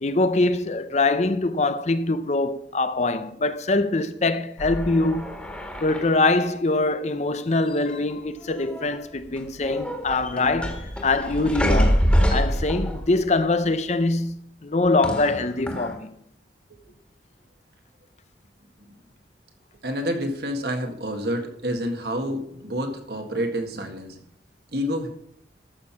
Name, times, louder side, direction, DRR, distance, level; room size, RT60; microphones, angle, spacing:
voice 1, 0.0-5.4 5.8-12.0 12.3-16.1, left 2 dB, 40° left, 0.7 m, -23 dB
sound 1, 4.6-6.3 7.5-8.1 8.4-9.0 9.4-13.3 15.0-15.9, equal, 5° left, 1.8 m, -26 dB
voice 2, 19.8-24.2 24.7-25.1, equal, 60° right, 1.8 m, -28 dB
13.5 x 6.5 x 5.9 m
head